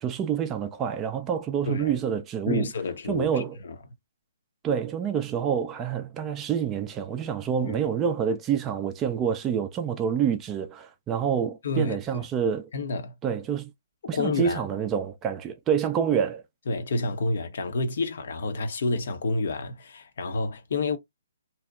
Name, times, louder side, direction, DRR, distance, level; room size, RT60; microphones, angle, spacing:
voice 1, 0.0-2.7 3.1-3.6 4.6-12.7 13.2-13.7 14.1-16.4, right 8 dB, 15° right, 0.3 m, -27 dB
voice 2, 1.7-2.0 2.5-3.8 7.6-7.8 11.6-12.3 12.7-13.1 14.1-14.7 16.7-21.0, left 3 dB, 50° left, 0.5 m, -29 dB
2.7 x 2.1 x 2.3 m
figure-of-eight pair, 130°, 0 cm